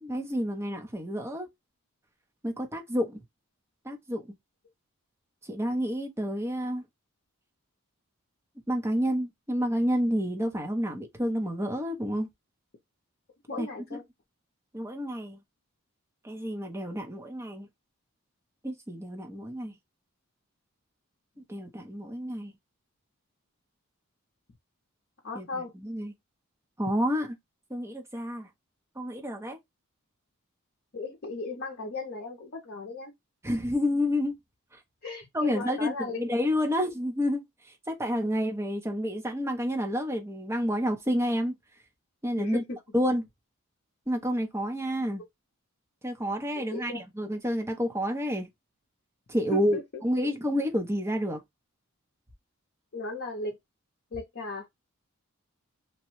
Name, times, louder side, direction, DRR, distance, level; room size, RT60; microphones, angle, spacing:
voice 1, 0.0-1.5 2.4-3.2 3.8-4.3 5.4-6.8 8.7-12.3 13.6-13.7 14.7-15.4 16.2-17.7 18.6-19.7 21.5-22.5 25.3-25.5 25.8-26.1 26.8-27.3 27.7-28.5 29.0-29.6 33.4-34.4 35.3-35.9 36.2-37.4 37.9-41.5 42.2-42.6 42.9-43.3 44.1-45.2 46.0-48.5 49.3-51.4, equal, 10° right, 0.6 m, -29 dB
voice 2, 13.5-14.0 25.2-25.7 30.9-33.1 35.0-36.2 42.4-42.8 46.6-47.0 49.5-50.3 52.9-53.6 54.1-54.7, left 3 dB, 50° left, 0.6 m, -36 dB
2.9 x 2.2 x 3.0 m
head